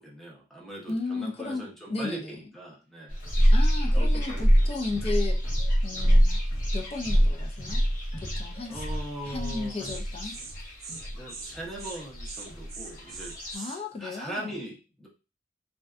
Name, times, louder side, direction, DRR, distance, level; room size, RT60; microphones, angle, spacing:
voice 1, 0.0-3.2 3.9-4.5 5.0-5.2 5.9-6.2 8.7-10.4 11.1-15.1, right 1 dB, ahead, -3 dB, 0.7 m, -41 dB
voice 2, 0.9-2.3 3.5-5.4 5.8-6.4 6.7-7.8 8.2-8.8 9.2-10.3 13.5-14.6, left 3 dB, 35° left, 3 dB, 0.4 m, -34 dB
sound 1, 3.1-13.5, equal, 50° left, 1.0 m, -25 dB
Insect, 9.4-9.6 9.8-10.0 10.3-10.5 10.8-11.0 11.3-11.5 11.8-12.0 12.2-13.8, right 4 dB, 40° right, 0.5 m, -41 dB
2.5 x 2.2 x 2.3 m, 0.31 s
head